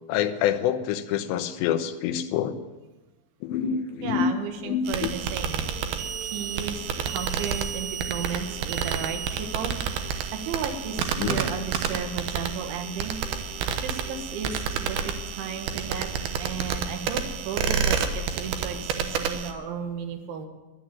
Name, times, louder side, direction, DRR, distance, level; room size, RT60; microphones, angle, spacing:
voice 1, 0.1-2.5 3.4-4.4 4.6-5.1 11.0-11.4, left 9 dB, 75° left, 7 dB, 3.0 m, -26 dB
voice 2, 4.0-5.7 6.2-9.7 10.0-13.2 13.8-15.0 15.3-16.1 16.4-20.5, right 7 dB, 85° right, 5 dB, 3.9 m, -34 dB
sound 1, 4.5-16.5, left 2 dB, 20° left, 5.6 m, -49 dB
sound 2, 4.9-19.5, right 7 dB, 70° right, 2.5 m, -30 dB
13.0 x 11.5 x 7.6 m, 1.1 s
omnidirectional pair, 5.3 m